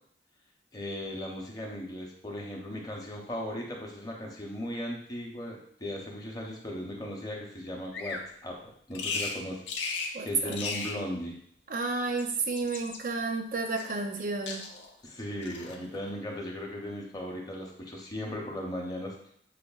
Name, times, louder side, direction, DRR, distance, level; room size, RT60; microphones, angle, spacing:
voice 1, 0.7-8.6 8.9-9.6 9.9-11.4 15.0-19.3, equal, 20° left, -1 dB, 0.6 m, -37 dB
Bird vocalization bird call bird song, 7.9-8.3 8.9-9.4 9.7-10.2 10.5-11.0 12.0-13.0 13.8-14.2 14.5-14.9 15.4-15.8, left 4 dB, 85° left, 0.5 m, -36 dB
voice 2, 10.1-10.6 11.7-14.6, right 3 dB, 50° right, 5 dB, 0.5 m, -31 dB
6.3 x 2.2 x 2.3 m, 0.66 s
head